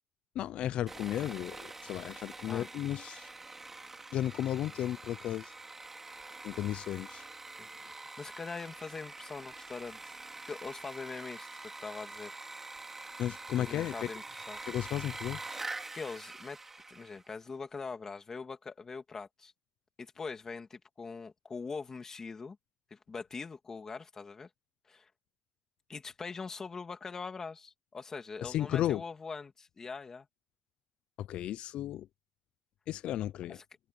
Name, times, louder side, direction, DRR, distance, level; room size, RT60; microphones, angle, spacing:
voice 1, 0.3-3.3 4.1-5.5 6.4-7.2 13.2-14.1 14.7-15.6 28.4-29.0 31.2-32.1 32.9-33.6, left 12 dB, 60° left, 0.6 m, -34 dB
Sawing, 0.9-17.3, right 3 dB, 15° right, 3.2 m, -45 dB
voice 2, 7.6-10.1 10.4-12.3 13.6-14.6 15.9-16.6 16.9-19.5 20.0-22.6 22.9-24.5 24.9-25.1 25.9-30.3 33.5-33.6, left 4 dB, 25° left, 2.5 m, -42 dB
cardioid pair, 145°, 2 cm